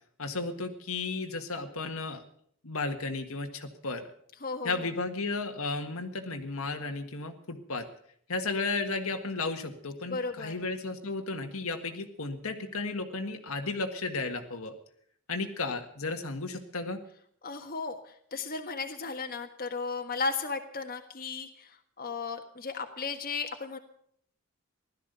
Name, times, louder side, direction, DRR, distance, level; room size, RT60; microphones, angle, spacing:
voice 1, 0.2-2.2 2.6-4.1 4.6-7.9 8.3-14.8 15.3-17.0, left 3 dB, 70° left, 5 dB, 1.7 m, -34 dB
voice 2, 4.4-4.9 10.1-10.6 17.4-23.8, left 4 dB, 40° left, 4 dB, 1.6 m, -35 dB
16.5 x 12.5 x 6.8 m, 0.65 s
head